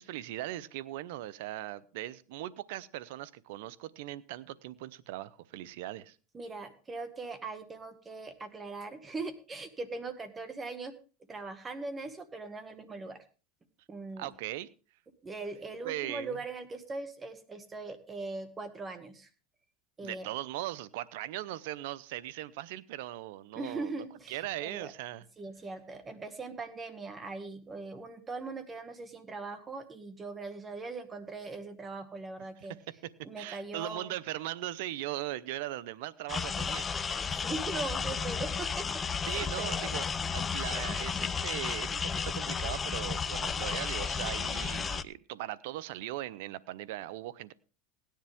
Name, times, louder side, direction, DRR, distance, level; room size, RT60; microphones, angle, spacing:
voice 1, 0.0-6.2 14.2-14.7 15.8-16.4 20.0-23.9 24.3-25.2 33.4-36.9 39.2-40.0 40.3-47.5, right 15 dB, 75° right, 19 dB, 0.7 m, -39 dB
voice 2, 6.3-11.0 11.3-13.2 13.9-14.3 15.2-19.3 20.0-20.3 23.6-24.9 25.4-32.8 33.2-34.1 37.1-39.9, right 3 dB, 20° right, 10 dB, 1.9 m, -40 dB
sound 1, 36.3-45.0, left 6 dB, 25° left, 0.6 m, -33 dB
16.5 x 10.5 x 3.6 m, 0.35 s
supercardioid pair, 105°, 0 cm